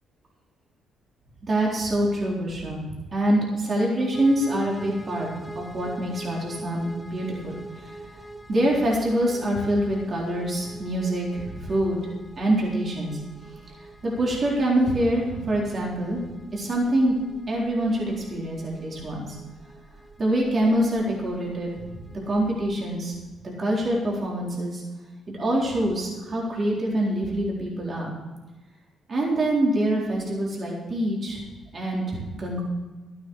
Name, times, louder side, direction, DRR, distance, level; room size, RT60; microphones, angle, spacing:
voice 1, 1.5-2.8 3.1-5.3 5.5-7.9 8.5-12.0 12.4-13.2 14.0-16.2 16.5-17.2 17.5-19.3 20.2-23.1 23.6-24.8 25.3-28.1 29.1-31.4 31.7-32.6, right 1 dB, 40° right, -3 dB, 4.0 m, -25 dB
sound 1, 4.1-22.9, right 2 dB, 5° left, 1.5 m, -44 dB
13.5 x 9.2 x 6.5 m, 1.2 s
cardioid pair, 90°, 0 cm